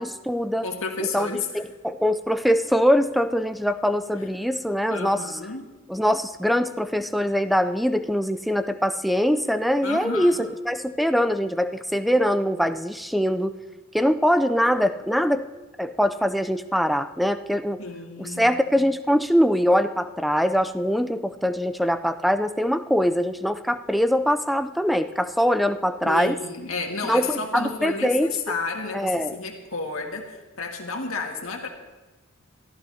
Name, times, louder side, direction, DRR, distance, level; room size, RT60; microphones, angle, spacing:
voice 1, 0.0-0.7 1.0-5.2 5.9-13.6 13.9-15.4 15.8-17.8 18.2-26.4 27.0-28.3 28.9-29.4, equal, ahead, 10 dB, 0.4 m, -23 dB
voice 2, 0.6-1.5 4.9-5.6 9.8-10.5 17.8-18.5 26.0-31.7, left 4 dB, 80° left, 2 dB, 1.9 m, -31 dB
23.5 x 14.0 x 2.8 m, 1.2 s
head